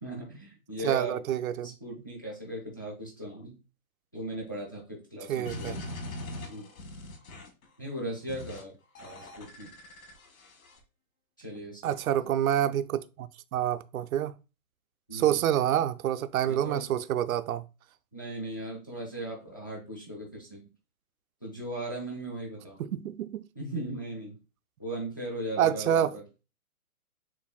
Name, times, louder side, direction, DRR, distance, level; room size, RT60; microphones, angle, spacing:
voice 1, 0.0-1.2 1.6-3.5 4.1-5.8 6.5-6.7 7.8-8.7 9.0-9.7 11.4-12.0 15.1-15.4 16.5-16.9 18.1-20.6 21.4-22.8 23.6-24.3 24.8-26.2, right 1 dB, 15° left, 0.4 m, -38 dB
voice 2, 0.8-1.7 5.3-5.8 11.8-14.3 15.1-17.6 22.8-23.4 25.6-26.2, right 11 dB, 70° right, 0.5 m, -27 dB
sound 1, 5.5-7.6 8.3-8.6 9.0-10.8, left 1 dB, 65° left, 1.6 m, -41 dB
7.1 x 2.5 x 2.2 m
hypercardioid pair, 155°, 45 cm